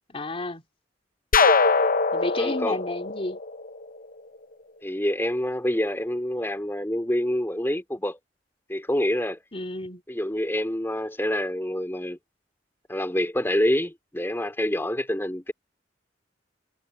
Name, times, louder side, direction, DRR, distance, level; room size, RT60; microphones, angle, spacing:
voice 1, 0.1-0.6 2.1-3.4 9.5-10.0, left 2 dB, 30° left, 3.2 m, -31 dB
sound 1, 1.3-4.1, left 4 dB, 50° left, 0.9 m, -22 dB
voice 2, 2.4-2.8 4.8-8.2 8.7-9.4 10.1-12.2 12.9-15.5, left 1 dB, 15° left, 3.0 m, -27 dB
head